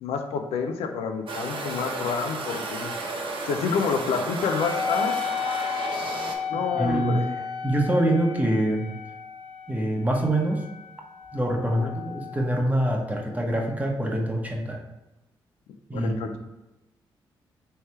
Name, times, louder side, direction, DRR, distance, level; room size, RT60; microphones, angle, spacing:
voice 1, 0.0-5.2 6.5-7.4 11.8-11.9 15.9-16.4, left 6 dB, 80° left, 5 dB, 0.4 m, -29 dB
sound 1, 1.3-6.4, right 3 dB, 55° right, 0.7 m, -33 dB
Wind instrument woodwind instrument, 4.4-13.3, left 6 dB, 55° left, 1.4 m, -34 dB
voice 2, 6.5-7.3 7.6-8.9 9.7-10.6 11.3-14.8 15.9-16.4, right 1 dB, 15° right, 0 dB, 1.1 m, -25 dB
3.3 x 3.2 x 4.3 m, 0.95 s
supercardioid pair, 45°, 10 cm